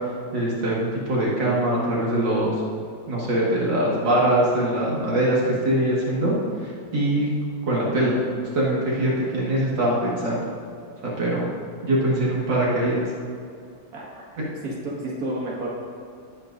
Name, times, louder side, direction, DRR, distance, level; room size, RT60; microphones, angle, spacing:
voice 1, 0.3-2.5 3.1-6.3 6.6-7.3 7.7-8.2 8.5-10.4 11.0-11.5 11.8-13.0 14.4-14.5, right 1 dB, 70° right, -6 dB, 2.5 m, -22 dB
voice 2, 13.9-14.2 14.6-15.7, right 1 dB, 50° right, -5 dB, 2.4 m, -31 dB
18.5 x 8.9 x 2.6 m, 2.5 s
omnidirectional pair, 2.0 m